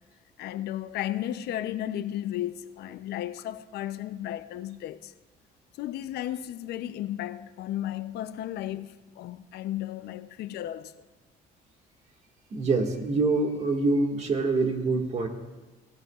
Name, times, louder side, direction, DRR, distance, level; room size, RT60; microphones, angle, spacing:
voice 1, 0.4-5.1 5.8-11.0, left 12 dB, 75° left, 0.6 m, -34 dB
voice 2, 12.5-15.3, right 3 dB, 40° right, 1.9 m, -25 dB
22.0 x 16.0 x 2.4 m
cardioid pair, 110°, 17 cm